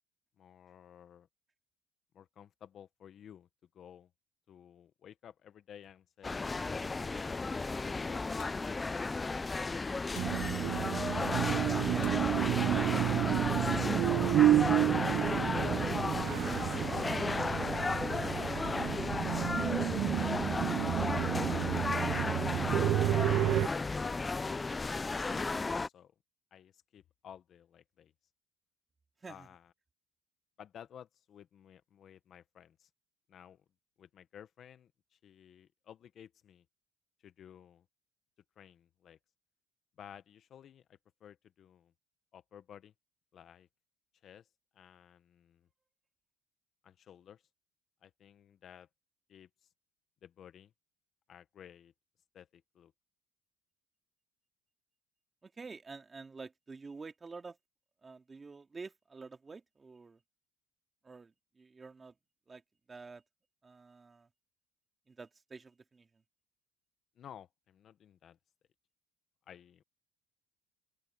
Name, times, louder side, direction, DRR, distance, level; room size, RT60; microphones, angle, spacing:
voice 1, 0.4-1.3 2.1-3.5 3.7-4.1 4.5-9.3 23.7-24.7 25.1-25.4 25.9-26.1 26.5-28.1 29.3-29.7 30.6-32.9 33.3-33.6 34.0-36.6 37.2-37.8 38.6-39.2 40.0-41.9 42.3-42.9 43.3-43.7 44.2-44.5 44.7-45.7 46.8-47.4 48.0-48.9 49.3-49.7 50.2-50.7 51.3-51.9 52.3-52.9 67.2-68.4 69.5-69.8, left 9 dB, 45° left, 1.1 m, -55 dB
sound 1, 6.2-25.9, left 3 dB, 15° left, 0.3 m, -34 dB
sound 2, 8.4-8.8 10.2-10.5 12.0-12.4 13.8-13.9, left 28 dB, 90° left, 4.4 m, -55 dB
sound 3, 10.1-23.7, right 13 dB, 60° right, 0.4 m, -30 dB
voice 2, 11.6-13.5 29.2-29.5 55.4-57.6 58.0-60.2 61.0-62.2 62.5-62.6 62.9-63.2 63.6-64.3 65.1-66.2, right 4 dB, 20° right, 2.4 m, -50 dB
open air
cardioid pair, 115°, 0 cm